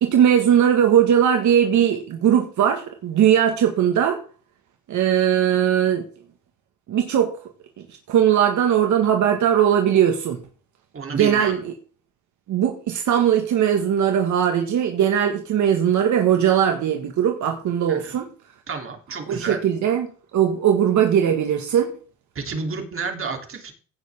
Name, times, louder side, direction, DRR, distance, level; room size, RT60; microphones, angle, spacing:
voice 1, 0.0-4.2 4.9-6.0 6.9-7.3 8.1-10.4 11.2-11.7 12.5-18.3 19.3-21.9, right 9 dB, 75° right, 4 dB, 1.8 m, -19 dB
voice 2, 10.9-11.5 17.9-18.1 18.7-19.6 22.3-23.7, right 4 dB, 45° right, 3 dB, 3.2 m, -30 dB
16.5 x 6.9 x 3.6 m, 0.40 s
cardioid pair, 90°, 30 cm